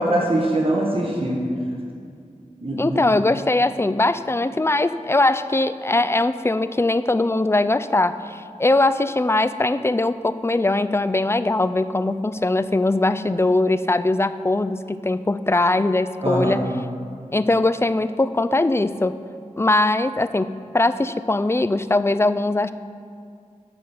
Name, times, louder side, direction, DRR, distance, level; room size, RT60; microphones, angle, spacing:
voice 1, 0.0-1.4 2.6-3.0 16.2-16.6, right 1 dB, 45° right, -2 dB, 1.4 m, -22 dB
voice 2, 2.8-16.6 17.3-19.1 19.6-22.7, left 2 dB, 20° left, 12 dB, 0.4 m, -21 dB
9.9 x 5.0 x 7.2 m, 2.3 s
wide cardioid pair, 50°, 13 cm